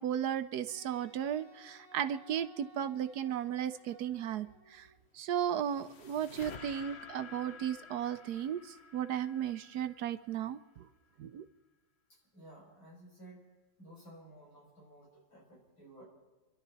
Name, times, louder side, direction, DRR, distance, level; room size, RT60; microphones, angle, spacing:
voice 1, 0.0-4.9 5.1-10.6 11.2-11.4, right 9 dB, 65° right, 12 dB, 1.0 m, -35 dB
Wind instrument woodwind instrument, 0.7-5.0, right 1 dB, 15° left, 4.0 m, -59 dB
sound 1, 5.1-10.5, left 5 dB, 45° left, 0.8 m, -51 dB
voice 2, 12.1-13.5 13.8-16.0, right 1 dB, 70° left, -4 dB, 6.8 m, -55 dB
29.0 x 12.0 x 4.1 m, 1.2 s
omnidirectional pair, 2.2 m